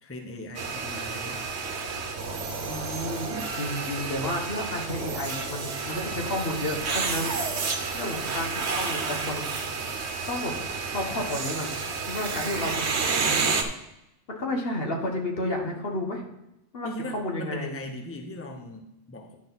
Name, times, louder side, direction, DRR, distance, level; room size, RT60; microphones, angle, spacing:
voice 1, 0.0-1.5 16.8-19.4, left 1 dB, 15° left, 2 dB, 0.9 m, -39 dB
sound 1, 0.5-13.6, right 4 dB, 70° right, 1.2 m, -30 dB
voice 2, 2.7-7.4 7.6-9.5 10.3-10.5 10.9-13.5 14.3-16.3 16.7-17.8, left 1 dB, 55° left, 1 dB, 1.6 m, -32 dB
10.5 x 6.5 x 4.0 m, 0.88 s
omnidirectional pair, 1.2 m